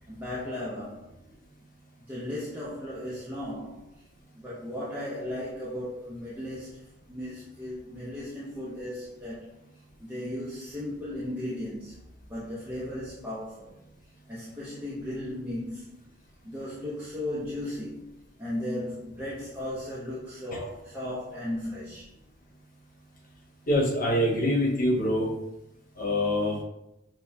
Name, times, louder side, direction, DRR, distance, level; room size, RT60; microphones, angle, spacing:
voice 1, 0.1-1.1 2.1-4.0 4.4-6.8 7.1-9.5 10.0-11.9 12.3-13.8 14.3-15.9 16.4-18.0 18.4-22.1, left 1 dB, 10° right, -8 dB, 0.6 m, -36 dB
voice 2, 23.7-25.3 26.0-26.6, left 1 dB, 45° left, -3 dB, 1.0 m, -25 dB
6.2 x 2.2 x 2.7 m, 0.86 s
head